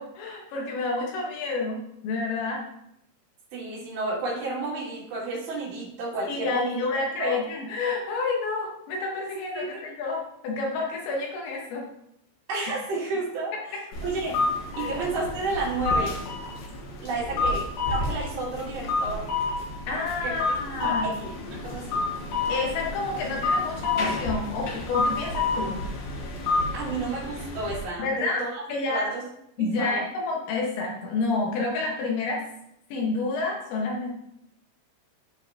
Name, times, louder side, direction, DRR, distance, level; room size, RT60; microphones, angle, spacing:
voice 1, 0.0-2.6 6.3-11.8 14.8-15.0 19.9-21.1 22.5-25.8 28.0-28.4 28.7-29.1 29.6-32.5 32.9-34.1, left 3 dB, 90° left, -1 dB, 3.8 m, -29 dB
voice 2, 3.5-6.9 7.2-7.4 9.5-9.8 12.5-14.4 14.8-16.2 17.0-19.3 20.2-20.3 20.8-21.3 21.6-22.0 26.7-29.2 29.6-30.0, right 3 dB, 75° right, -6 dB, 4.8 m, -31 dB
sound 1, 13.9-27.8, left 3 dB, 65° left, 3.3 m, -29 dB
13.0 x 4.6 x 2.9 m, 0.77 s
omnidirectional pair, 5.0 m